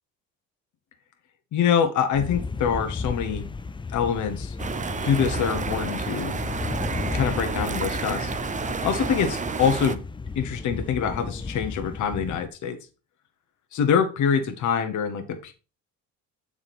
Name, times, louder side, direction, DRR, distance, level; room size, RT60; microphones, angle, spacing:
voice 1, 1.5-3.5 3.9-4.6 5.0-6.4 7.1-8.3 8.6-10.0 10.3-12.8 13.7-15.5, left 7 dB, 65° left, 6 dB, 1.2 m, -25 dB
sound 1, 2.1-12.5, left 4 dB, 15° left, 0.5 m, -33 dB
sound 2, 4.6-10.0, right 5 dB, 25° right, 0.7 m, -31 dB
7.2 x 4.8 x 4.2 m, 0.32 s
cardioid pair, 85°, 32 cm